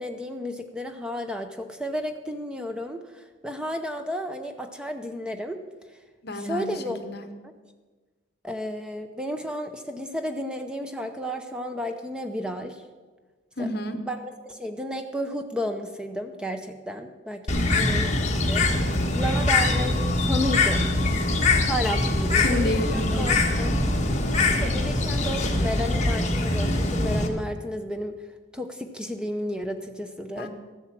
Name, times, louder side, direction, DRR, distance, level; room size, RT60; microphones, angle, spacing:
voice 1, 0.0-5.6 6.4-7.0 7.4-7.5 8.4-12.8 13.6-13.7 14.1-14.2 14.5-17.5 17.8-18.1 18.4-18.7 19.1-21.2 21.6-23.7 24.5-28.2 28.5-30.5, equal, 5° right, 6 dB, 0.6 m, -32 dB
voice 2, 6.2-7.3 13.6-14.0 17.5-17.9 21.5-21.7 22.4-23.3 30.4-30.5, left 1 dB, 55° left, 8 dB, 1.0 m, -31 dB
Bird, 17.5-27.3, left 2 dB, 35° left, 1.3 m, -23 dB
13.5 x 7.9 x 7.4 m, 1.3 s
head